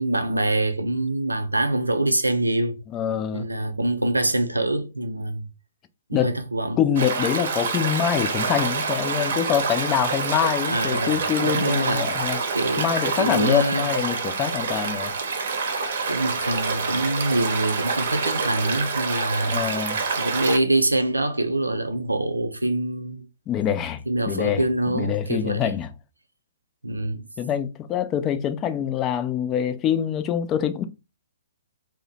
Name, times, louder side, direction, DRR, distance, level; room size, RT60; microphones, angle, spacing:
voice 1, 0.0-2.8 3.3-5.5 6.1-6.8 10.6-12.1 12.5-12.9 13.2-13.9 16.0-19.6 20.2-23.3 24.1-25.7 26.8-27.2, right 1 dB, 85° right, 0.4 m, -25 dB
voice 2, 2.9-3.5 6.1-6.3 6.8-12.4 12.8-15.1 19.5-20.0 23.5-24.0 24.3-25.9 27.4-30.9, left 9 dB, 20° left, 0.4 m, -25 dB
Stream, 7.0-20.6, right 4 dB, 55° right, 0.7 m, -27 dB
2.7 x 2.1 x 4.0 m
figure-of-eight pair, 120°, 0 cm